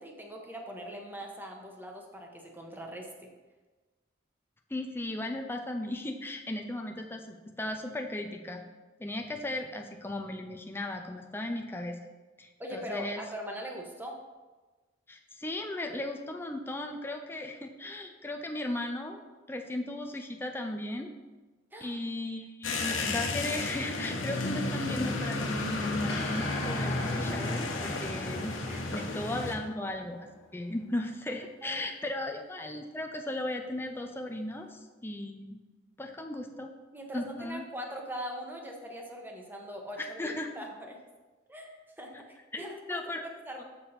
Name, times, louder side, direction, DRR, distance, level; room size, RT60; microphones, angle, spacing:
voice 1, 0.0-3.3 12.6-14.2 21.7-22.0 28.7-29.0 31.6-31.8 36.9-41.0 41.5-43.6, equal, 10° right, 1 dB, 1.1 m, -41 dB
voice 2, 4.7-8.6 9.0-12.0 12.4-13.3 15.1-19.2 19.5-21.1 21.8-28.5 28.9-35.6 36.0-36.7 37.1-37.6 40.0-40.5 42.5-43.2 43.6-43.7, left 1 dB, 10° left, 3 dB, 0.5 m, -36 dB
sound 1, 22.6-29.5, left 2 dB, 85° left, 1.1 m, -32 dB
sound 2, 26.1-30.5, left 2 dB, 60° left, 1.7 m, -40 dB
7.1 x 6.8 x 4.3 m, 1.2 s
head